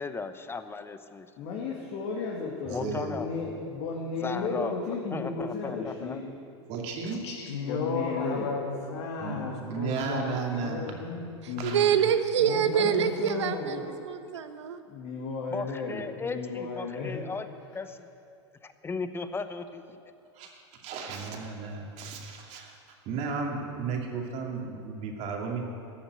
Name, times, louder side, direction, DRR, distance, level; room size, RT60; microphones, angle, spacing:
voice 1, 0.0-1.3 2.7-3.3 4.2-4.8 5.1-6.2 15.5-17.5 17.7-18.1 18.6-20.0, left 4 dB, 15° left, 10 dB, 0.8 m, -36 dB
voice 2, 1.4-6.4 7.7-8.5 11.9-12.0 12.7-13.8 14.9-17.2, left 4 dB, 50° left, -2 dB, 2.2 m, -34 dB
voice 3, 2.7-3.1 6.7-7.2 9.2-10.9 11.6-11.8 20.4-22.8 23.1-25.6, right 5 dB, 45° right, 1 dB, 2.5 m, -34 dB
voice 4, 7.1-11.9 12.4-13.1, left 4 dB, 70° left, 1 dB, 2.5 m, -34 dB
voice 5, 11.4-14.8, right 8 dB, 75° right, 9 dB, 1.0 m, -26 dB
14.0 x 7.1 x 9.6 m, 2.6 s
hypercardioid pair, 95°, 15 cm